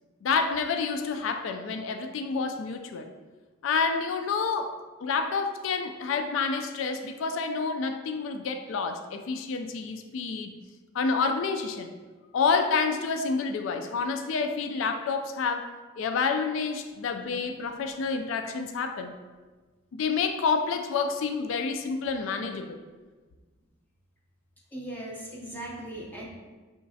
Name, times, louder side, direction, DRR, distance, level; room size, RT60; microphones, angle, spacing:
voice 1, 0.2-3.1 3.6-10.5 10.9-11.9 12.3-15.7 16.0-19.1 19.9-22.8, left 5 dB, 75° left, 7 dB, 0.3 m, -28 dB
voice 2, 24.7-26.3, right 1 dB, 10° left, -3 dB, 0.5 m, -38 dB
5.7 x 3.1 x 2.7 m, 1.4 s
head